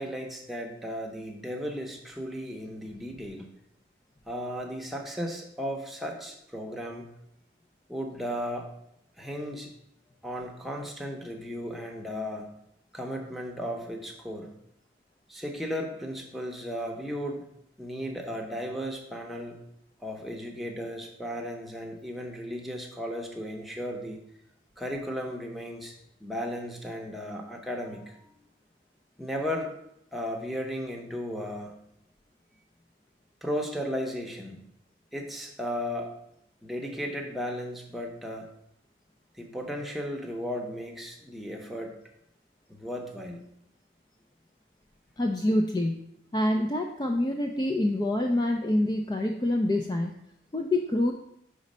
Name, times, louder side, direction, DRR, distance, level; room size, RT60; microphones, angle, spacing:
voice 1, 0.0-3.5 4.3-7.1 7.9-8.7 9.2-9.7 10.2-12.5 12.9-14.5 15.3-17.4 17.8-19.6 20.0-24.2 24.8-25.9 26.2-28.3 29.2-29.7 30.1-31.8 33.4-34.6 35.1-36.1 36.6-38.5 39.3-41.9 42.7-43.4, equal, ahead, 0 dB, 0.7 m, -35 dB
voice 2, 45.2-46.1 46.3-50.2 50.5-51.1, left 1 dB, 20° left, 2 dB, 0.3 m, -26 dB
5.1 x 4.0 x 5.3 m, 0.76 s
head